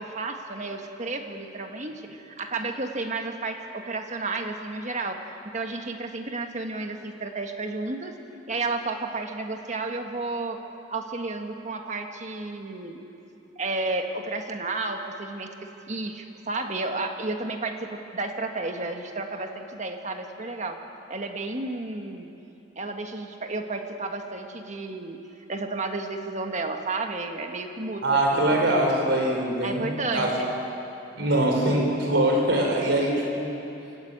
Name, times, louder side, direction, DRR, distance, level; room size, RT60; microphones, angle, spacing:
voice 1, 0.0-5.2 5.5-8.2 8.5-10.6 10.9-13.0 13.6-20.8 21.1-22.3 22.7-25.2 25.5-28.4 29.6-30.5, right 3 dB, 40° right, 4 dB, 1.6 m, -32 dB
voice 2, 28.0-30.3 31.1-33.5, right 1 dB, 70° right, 0 dB, 4.9 m, -23 dB
25.0 x 14.5 x 8.9 m, 2.8 s
head